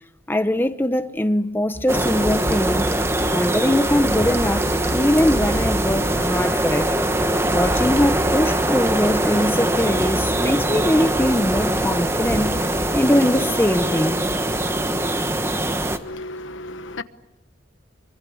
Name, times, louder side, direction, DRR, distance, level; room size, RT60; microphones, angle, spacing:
voice 1, 0.3-2.9 3.3-6.9 7.5-12.6 12.9-14.3, left 1 dB, 10° left, 1.0 m, -21 dB
sound 1, 1.7-13.6, equal, 30° right, 1.8 m, -36 dB
sound 2, 1.9-16.0, right 1 dB, 15° right, 1.3 m, -22 dB
voice 2, 16.0-17.0, left 2 dB, 85° left, 1.2 m, -34 dB
24.5 x 24.5 x 8.6 m
head